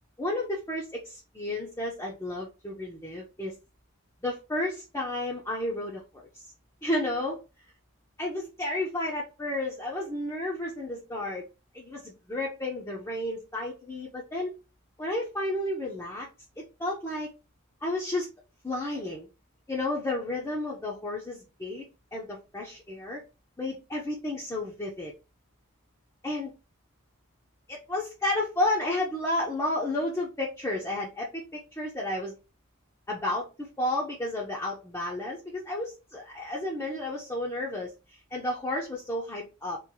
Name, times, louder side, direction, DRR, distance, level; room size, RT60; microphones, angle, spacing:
voice 1, 0.2-3.6 4.2-6.5 6.8-7.4 8.2-11.5 11.7-14.5 15.0-16.3 16.6-17.3 17.8-18.3 18.6-19.3 19.7-21.8 22.1-23.2 23.6-25.1 26.2-26.5 27.7-32.4 33.1-39.8, left 1 dB, 15° left, -4 dB, 0.6 m, -32 dB
3.1 x 2.5 x 3.6 m, 0.29 s
head